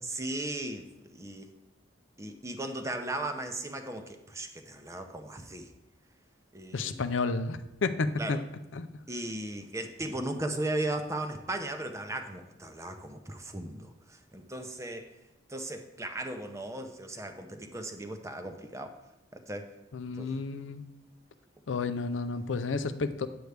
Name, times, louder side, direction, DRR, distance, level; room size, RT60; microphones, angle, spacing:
voice 1, 0.0-0.9 1.1-1.5 2.2-5.7 6.5-7.0 8.2-8.4 9.1-15.1 15.5-18.9 19.3-19.7 20.2-20.4, right 1 dB, 15° right, 6 dB, 0.6 m, -37 dB
voice 2, 6.7-8.4 8.7-8.9 19.9-20.8 21.7-23.3, left 4 dB, 80° left, 10 dB, 0.5 m, -31 dB
9.4 x 7.9 x 3.3 m, 1.0 s
head